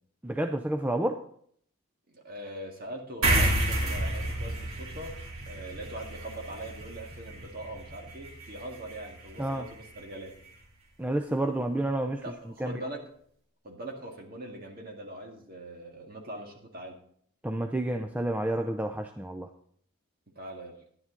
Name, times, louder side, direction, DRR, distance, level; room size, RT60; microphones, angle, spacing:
voice 1, 0.2-1.2 9.4-9.7 11.0-12.2 12.6-12.8 17.4-19.5, right 1 dB, 5° right, 5 dB, 0.4 m, -29 dB
voice 2, 2.1-5.2 5.5-10.4 12.2-13.1 13.6-17.0 20.3-20.8, right 1 dB, 40° right, 1 dB, 1.8 m, -42 dB
sound 1, 3.2-10.0, right 1 dB, 75° right, 2.8 m, -31 dB
10.5 x 9.8 x 3.8 m, 0.63 s
head